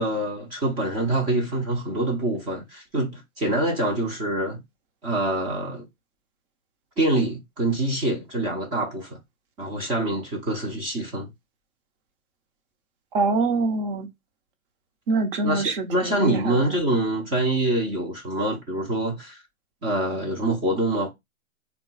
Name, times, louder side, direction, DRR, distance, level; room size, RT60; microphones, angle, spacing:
voice 1, 0.0-4.6 5.0-5.9 7.0-9.2 9.6-11.3 15.4-19.4 19.8-21.1, right 1 dB, 10° right, 0.5 m, -25 dB
voice 2, 13.1-14.1 15.1-16.6, right 3 dB, 40° right, 1.0 m, -24 dB
3.6 x 2.3 x 4.0 m
hypercardioid pair, 130°, 41 cm